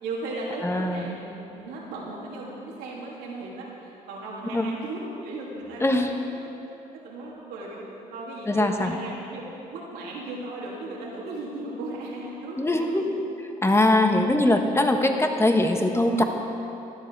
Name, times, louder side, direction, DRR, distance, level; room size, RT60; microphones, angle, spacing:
voice 1, 0.0-6.1 6.4-6.5 7.0-7.8 8.1-9.5 9.7-13.1 15.0-15.4 16.2-16.3, right 2 dB, 80° right, -4 dB, 3.0 m, -36 dB
voice 2, 0.6-1.2 4.5-4.7 5.8-6.1 8.5-8.9 12.6-13.3 13.6-16.2, left 1 dB, 15° left, 4 dB, 1.4 m, -22 dB
16.0 x 11.0 x 4.8 m, 2.9 s
supercardioid pair, 75°, 16 cm